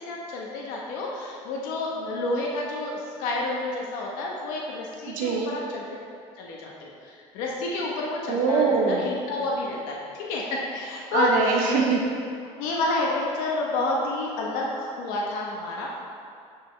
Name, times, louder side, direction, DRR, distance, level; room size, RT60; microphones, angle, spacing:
voice 1, 0.0-5.8 6.4-11.3 12.6-15.9, left 2 dB, 85° left, -2 dB, 1.0 m, -29 dB
voice 2, 5.1-5.5 8.3-9.0 11.1-12.0, right 5 dB, 75° right, 0 dB, 0.8 m, -23 dB
9.4 x 5.1 x 3.2 m, 2.3 s
supercardioid pair, 95°, 14 cm